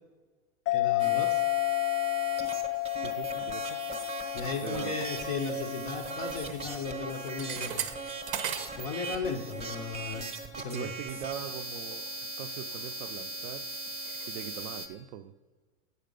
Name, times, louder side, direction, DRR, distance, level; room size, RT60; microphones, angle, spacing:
sound 1, 0.7-7.7, left 20 dB, 90° left, 0.5 m, -32 dB
voice 1, 0.7-1.4 3.3-3.4 4.3-7.9 8.8-10.3 10.6-10.9, left 5 dB, 20° left, 0.3 m, -36 dB
sound 2, 1.0-14.9, right 3 dB, 15° right, 0.7 m, -39 dB
sound 3, 1.7-2.6 2.9-9.5 9.8-10.1 10.7-10.8 11.3-14.7, right 9 dB, 85° right, 0.8 m, -43 dB
voice 2, 3.0-3.8 4.6-5.0 10.6-13.7 14.3-15.3, right 10 dB, 55° right, 0.5 m, -41 dB
8.1 x 6.7 x 5.1 m
supercardioid pair, 145°, 41 cm